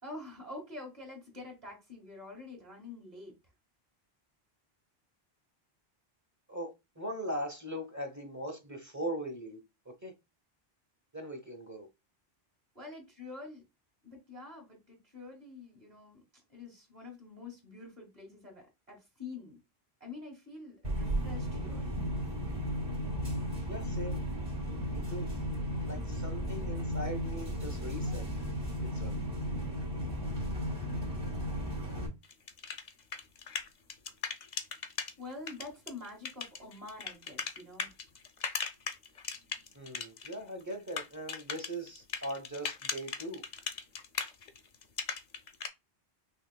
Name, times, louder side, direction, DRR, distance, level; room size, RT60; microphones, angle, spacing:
voice 1, 0.0-3.3 12.8-13.6 14.0-19.6 20.0-21.8 35.2-37.9, left 3 dB, 40° right, 1.9 m, -47 dB
voice 2, 6.5-9.6 9.9-10.1 11.1-11.9 23.7-24.2 24.9-25.3 25.9-28.2 28.8-29.2 39.7-43.4, right 1 dB, 20° right, 0.9 m, -40 dB
sound 1, 20.8-32.1, equal, 60° right, 2.0 m, -35 dB
sound 2, 32.2-35.1 35.5-40.4 40.6-45.7, left 6 dB, 50° left, 0.7 m, -38 dB
5.7 x 2.9 x 2.2 m
omnidirectional pair, 1.0 m